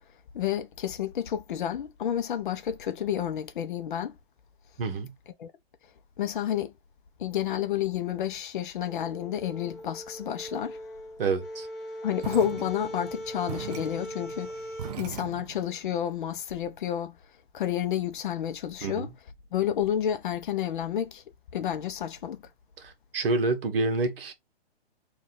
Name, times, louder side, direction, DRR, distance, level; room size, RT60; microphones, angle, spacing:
voice 1, 0.3-4.2 5.4-5.5 6.2-6.7 7.2-10.8 12.0-17.2 17.5-19.1 19.5-21.2 21.5-22.4, left 10 dB, 50° left, 0.8 m, -30 dB
voice 2, 4.8-5.1 11.2-11.7 18.8-19.1 22.8-24.3, right 3 dB, 60° right, 1.2 m, -28 dB
sound 1, 8.8-15.0, equal, 10° left, 0.7 m, -40 dB
sound 2, 12.2-15.7, right 10 dB, 40° right, 0.4 m, -41 dB
3.2 x 2.6 x 3.9 m
hypercardioid pair, 150°, 32 cm